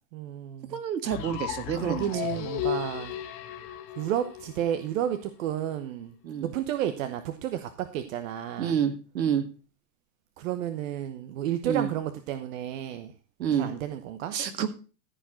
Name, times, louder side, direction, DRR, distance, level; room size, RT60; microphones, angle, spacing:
voice 1, 0.1-0.8 1.8-3.2 4.0-6.1 6.4-8.7 10.4-13.1 13.5-14.4, right 10 dB, 50° right, 1.1 m, -31 dB
voice 2, 0.7-2.1 6.2-6.5 8.6-9.5 11.6-11.9 13.4-13.7 14.3-14.7, right 8 dB, 90° right, 1.9 m, -28 dB
sound 1, 1.1-5.1, left 11 dB, 45° left, 1.7 m, -35 dB
14.5 x 5.0 x 6.2 m
hypercardioid pair, 140°, 49 cm